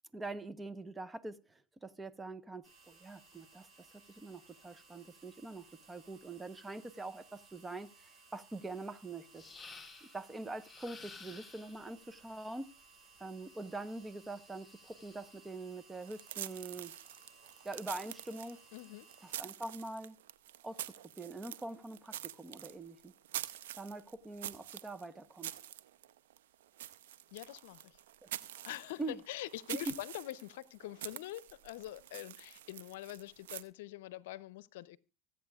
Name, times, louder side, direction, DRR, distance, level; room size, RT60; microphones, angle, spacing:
voice 1, 0.1-3.7 4.1-9.4 10.0-12.7 13.2-16.9 17.6-18.6 19.2-20.2 20.6-23.1 23.7-25.5 28.2-28.3 29.0-29.2 29.7-29.8, right 2 dB, 15° right, 1.0 m, -44 dB
sound 1, 2.6-19.3, right 4 dB, 45° right, 6.6 m, -61 dB
sound 2, 9.3-10.2 10.6-11.9 13.5-15.4, left 4 dB, 20° left, 3.0 m, -54 dB
sound 3, 16.0-33.6, right 12 dB, 85° right, 0.6 m, -47 dB
voice 2, 18.7-19.1 27.3-28.0 28.6-35.0, left 15 dB, 80° left, 0.7 m, -45 dB
25.0 x 8.6 x 2.4 m
hypercardioid pair, 95°, 0 cm